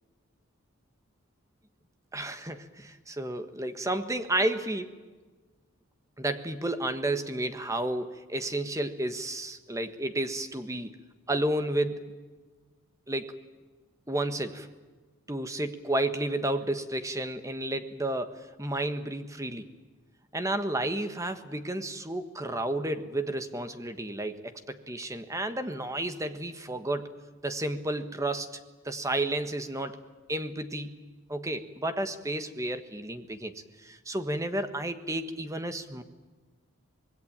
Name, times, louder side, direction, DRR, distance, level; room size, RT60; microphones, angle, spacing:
voice 1, 2.1-4.9 6.2-11.0 11.3-12.2 13.1-13.4 14.1-14.7 15.3-19.7 20.3-28.5 28.8-30.0 30.3-31.0 31.3-33.5 33.8-36.0, right 1 dB, 15° right, 9 dB, 1.5 m, -32 dB
25.5 x 20.5 x 8.9 m, 1.3 s
head